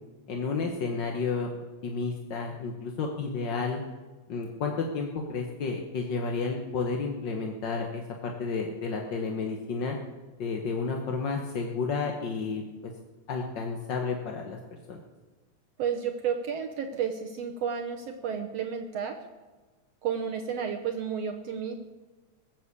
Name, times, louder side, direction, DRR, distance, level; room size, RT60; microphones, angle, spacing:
voice 1, 0.3-1.5 1.8-3.8 4.3-10.0 10.4-12.6 13.3-14.6 14.9-15.0, left 4 dB, 55° left, 1 dB, 1.4 m, -31 dB
voice 2, 15.8-19.2 20.0-21.8, right 7 dB, 65° right, 5 dB, 1.8 m, -31 dB
20.0 x 7.5 x 8.4 m, 1.3 s
omnidirectional pair, 3.5 m